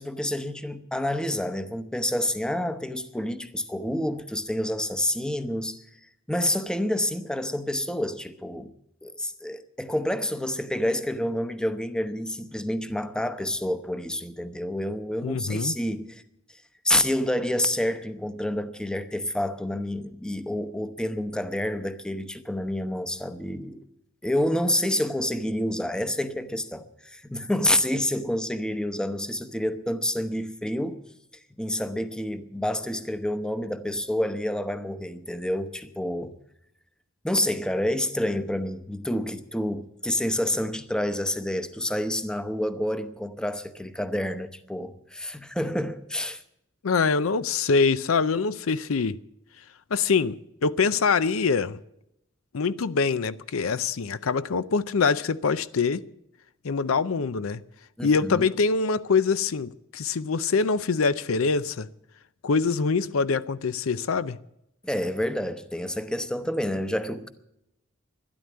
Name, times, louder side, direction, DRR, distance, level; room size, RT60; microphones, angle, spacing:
voice 1, 0.0-5.8 6.3-8.7 9.0-16.2 16.8-23.8 24.2-31.0 31.6-36.3 37.2-46.4 58.0-58.5 64.8-67.3, left 1 dB, 5° left, 0.8 m, -28 dB
voice 2, 15.2-15.7 46.8-49.2 49.9-51.8 52.5-56.0 56.6-57.6 58.0-61.9 62.4-64.4, left 5 dB, 85° left, 0.6 m, -24 dB
12.5 x 11.0 x 9.5 m
head